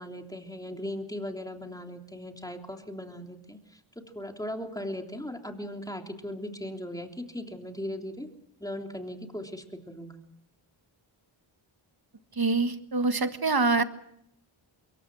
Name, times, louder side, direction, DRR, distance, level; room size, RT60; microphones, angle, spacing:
voice 1, 0.0-3.6 4.1-8.3 8.6-10.1, left 1 dB, 5° left, 3 dB, 3.2 m, -38 dB
voice 2, 12.4-13.8, right 3 dB, 45° right, 9 dB, 1.7 m, -25 dB
25.5 x 22.5 x 6.3 m, 0.75 s
wide cardioid pair, 60°, 49 cm